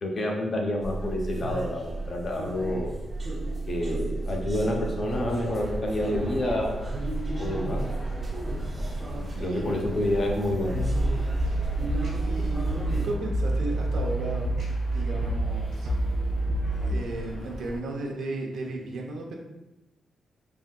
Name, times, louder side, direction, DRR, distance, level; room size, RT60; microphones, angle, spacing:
voice 1, 0.0-2.9 3.7-6.9 7.4-7.8 9.2-10.8, left 1 dB, 40° left, 0 dB, 0.5 m, -28 dB
sound 1, 0.8-13.1, right 2 dB, 25° right, 0.4 m, -33 dB
sound 2, 5.0-17.8, equal, 85° left, 0.7 m, -38 dB
sound 3, 10.5-17.0, right 1 dB, 60° right, 1.2 m, -28 dB
voice 2, 12.1-14.5 14.9-15.9 16.9-19.4, right 2 dB, 80° right, 1 dB, 0.6 m, -35 dB
3.4 x 2.6 x 2.2 m, 0.95 s
wide cardioid pair, 145°, 0 cm